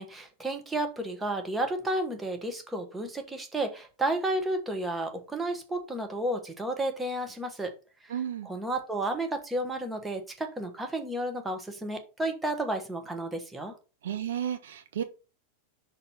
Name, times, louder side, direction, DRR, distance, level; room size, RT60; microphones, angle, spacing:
voice 1, 0.0-7.7 8.0-8.1 8.4-13.8, right 1 dB, 10° right, 4 dB, 1.3 m, -32 dB
voice 2, 8.1-8.5 14.0-15.0, right 9 dB, 60° right, 8 dB, 0.7 m, -32 dB
5.9 x 4.1 x 5.4 m, 0.33 s
figure-of-eight pair, 90°, 0 cm